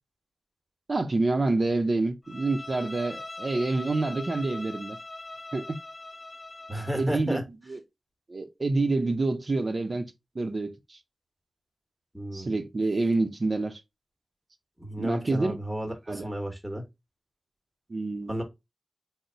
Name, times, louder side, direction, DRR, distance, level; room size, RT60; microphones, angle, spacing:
voice 1, 0.9-5.0 5.5-5.8 6.9-7.4 7.7-7.8 8.3-11.0 12.3-13.8 15.0-15.6 16.1-16.3 17.9-18.4, right 2 dB, 55° right, 0.6 m, -27 dB
Bowed string instrument, 2.2-7.2, left 2 dB, 30° left, 0.6 m, -41 dB
voice 2, 6.7-7.4 12.1-12.6 14.8-16.8 18.3-18.4, equal, 5° right, 1.2 m, -33 dB
3.9 x 2.1 x 4.2 m
wide cardioid pair, 65°, 0 cm